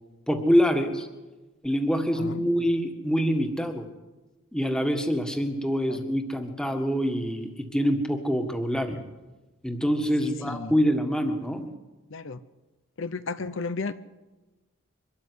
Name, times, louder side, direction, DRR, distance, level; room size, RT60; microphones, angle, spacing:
voice 1, 0.3-1.1 1.6-3.9 4.5-9.0 9.6-11.7, equal, 5° left, 5 dB, 1.7 m, -25 dB
voice 2, 10.2-10.7 12.1-12.4 13.0-13.9, left 4 dB, 65° left, 12 dB, 0.8 m, -33 dB
24.0 x 13.0 x 9.6 m, 1.2 s
head